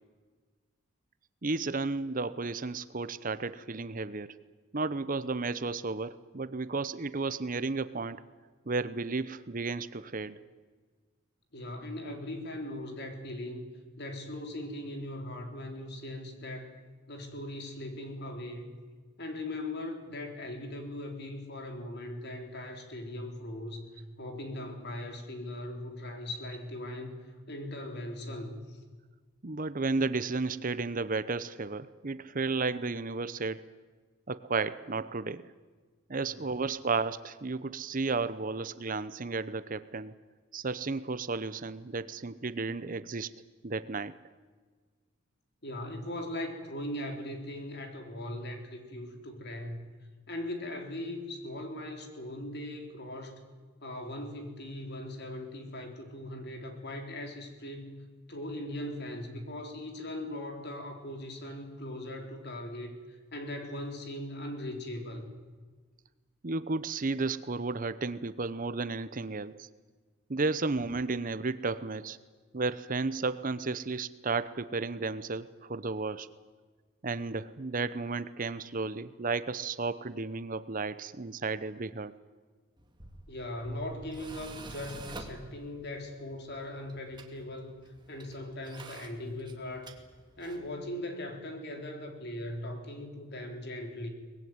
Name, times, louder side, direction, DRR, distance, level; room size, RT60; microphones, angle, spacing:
voice 1, 1.4-4.4 4.7-8.2 8.7-10.4 29.4-33.6 34.3-35.5 36.1-40.1 40.5-43.3 43.6-44.1 66.4-69.7 70.3-72.2 72.5-76.3 77.0-82.1, right 3 dB, 40° right, 14 dB, 0.8 m, -33 dB
voice 2, 11.5-13.6 14.0-16.7 17.1-18.7 19.2-28.8 45.6-49.8 50.3-53.4 53.8-65.3 83.3-87.7 88.1-89.9 90.4-94.1, left 1 dB, 50° left, 4 dB, 3.9 m, -39 dB
Tools, 82.8-90.7, right 2 dB, 20° right, 2.3 m, -49 dB
23.5 x 20.5 x 9.5 m, 1.4 s
head